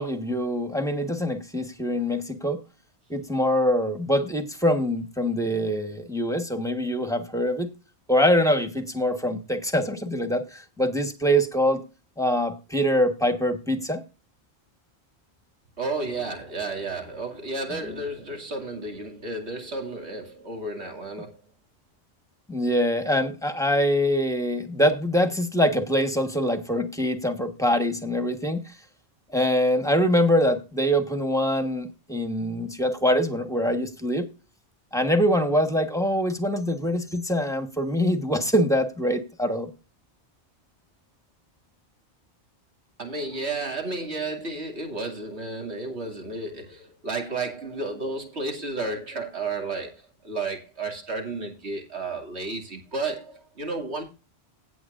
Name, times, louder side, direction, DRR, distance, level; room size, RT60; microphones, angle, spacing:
voice 1, 0.0-2.6 3.1-7.7 8.1-11.8 12.2-14.0 22.5-28.6 29.3-34.3 34.9-39.7, equal, 5° left, 1.3 m, -24 dB
voice 2, 15.8-21.4 43.0-54.0, right 3 dB, 70° right, 2.8 m, -32 dB
16.5 x 7.7 x 2.5 m
omnidirectional pair, 1.2 m